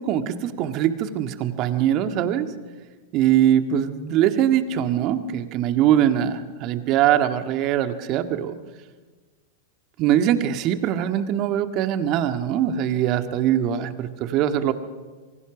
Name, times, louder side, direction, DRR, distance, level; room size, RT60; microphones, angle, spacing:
voice 1, 0.0-2.5 3.1-8.6 10.0-14.7, right 10 dB, 45° right, 7 dB, 1.8 m, -22 dB
26.5 x 24.0 x 6.1 m, 1.4 s
figure-of-eight pair, 95°, 0 cm